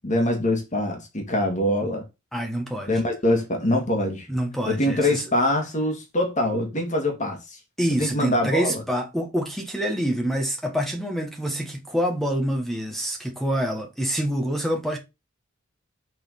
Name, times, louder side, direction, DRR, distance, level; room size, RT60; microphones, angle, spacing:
voice 1, 0.0-2.1 2.9-4.3 4.7-7.6 8.0-8.8, left 1 dB, 35° left, 2.1 m, -24 dB
voice 2, 2.3-2.9 4.3-5.2 7.8-15.0, equal, ahead, 1.6 m, -26 dB
6.4 x 4.3 x 5.4 m
head